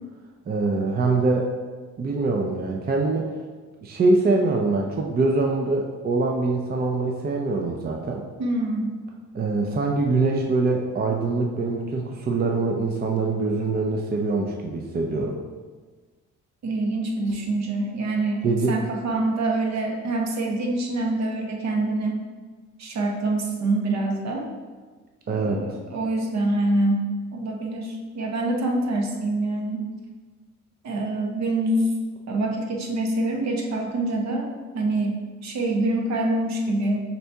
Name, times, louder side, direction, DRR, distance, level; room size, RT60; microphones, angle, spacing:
voice 1, 0.5-1.5 2.0-3.3 3.8-8.2 9.3-15.4 18.4-18.8 25.3-25.8, right 3 dB, 30° right, 1 dB, 0.5 m, -24 dB
voice 2, 8.4-9.0 16.6-22.2 22.8-24.5 25.3-27.1 27.3-29.9 30.8-31.9 32.3-37.0, right 2 dB, 60° right, 1 dB, 0.9 m, -25 dB
5.7 x 2.7 x 3.4 m, 1.4 s
cardioid pair, 90°, 30 cm